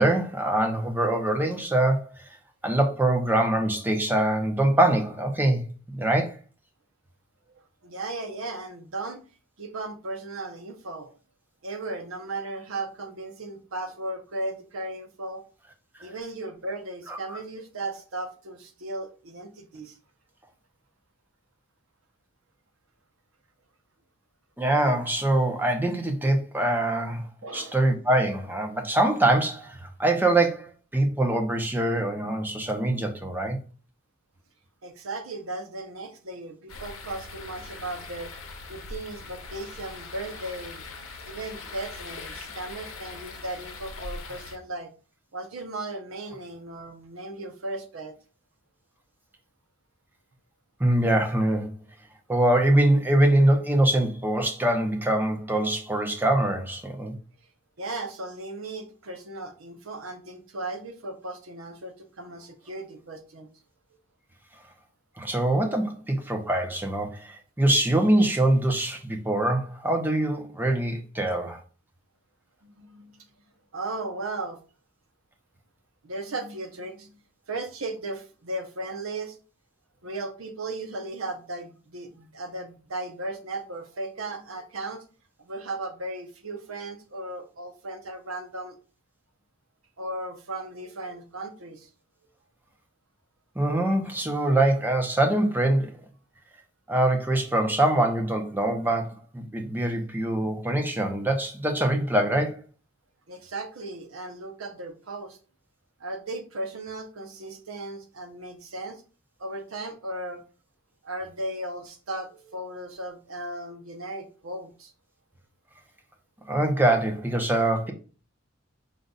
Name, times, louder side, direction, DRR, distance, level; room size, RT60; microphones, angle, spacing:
voice 1, 0.0-2.2 2.6-6.4 17.1-17.2 24.6-27.3 27.5-33.6 50.8-51.8 52.3-57.1 65.2-71.6 93.6-95.9 96.9-102.6 116.5-117.9, right 1 dB, 10° right, 0.7 m, -24 dB
voice 2, 7.5-9.2 9.6-11.1 11.6-15.4 16.0-20.0 27.4-27.8 34.8-38.3 38.7-40.9 41.3-44.9 45.3-48.2 57.8-63.5 72.6-73.1 73.7-74.6 76.0-77.2 77.5-79.4 80.0-85.0 85.4-88.8 90.0-91.9 103.3-105.4 106.0-109.0 109.4-110.4 111.0-114.9, right 2 dB, 85° right, 0.8 m, -36 dB
sound 1, 36.7-44.6, left 3 dB, 80° left, 0.7 m, -41 dB
5.1 x 2.3 x 3.9 m
head